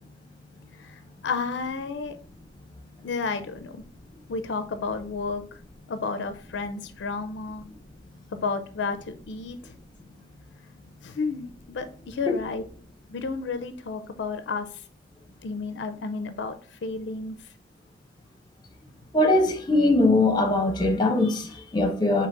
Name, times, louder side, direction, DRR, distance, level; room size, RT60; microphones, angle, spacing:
voice 1, 0.8-2.2 3.0-3.8 4.3-5.4 5.9-7.7 8.3-9.7 11.0-12.6 13.1-14.8 15.4-17.4, left 4 dB, 70° left, 0.4 m, -32 dB
voice 2, 19.1-22.3, left 2 dB, 20° left, 0.7 m, -21 dB
3.7 x 2.8 x 4.6 m
head